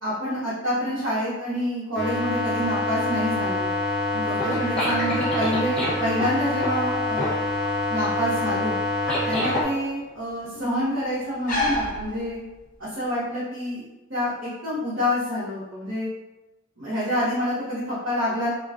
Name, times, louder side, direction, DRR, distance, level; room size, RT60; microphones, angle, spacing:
voice 1, 0.0-3.7 4.1-7.4 7.9-8.8 9.2-12.4 12.8-13.8 14.1-16.1 16.8-18.5, equal, 60° right, -11 dB, 0.8 m, -27 dB
sound 1, 1.9-9.6, left 1 dB, 5° left, 0.8 m, -25 dB
sound 2, 6.2-12.8, left 1 dB, 40° left, 0.5 m, -34 dB
2.5 x 2.2 x 2.4 m, 1.1 s
head